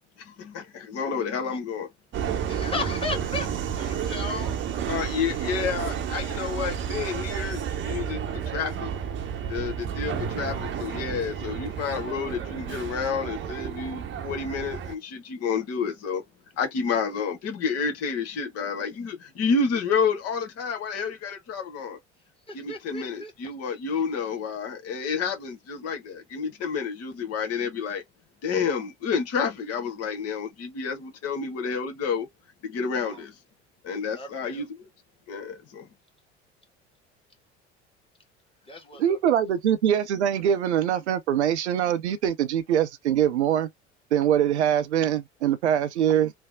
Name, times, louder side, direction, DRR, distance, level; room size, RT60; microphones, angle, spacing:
voice 1, 0.2-1.9 4.9-8.2 8.5-8.9 9.5-16.2 16.6-22.0 22.5-28.0 28.4-32.3 32.6-33.4 33.8-34.9 35.3-35.9, left 5 dB, 45° left, 1.1 m, -29 dB
Subway metro underground, 2.1-14.9, right 8 dB, 35° right, 0.8 m, -31 dB
voice 2, 2.5-3.5 3.7-4.6 22.5-23.3 33.0-33.2 34.1-34.6 38.6-39.2, left 3 dB, 15° left, 1.6 m, -35 dB
voice 3, 39.0-43.7 44.1-46.3, right 10 dB, 80° right, 0.6 m, -23 dB
3.3 x 2.0 x 3.4 m
figure-of-eight pair, 65°, 34 cm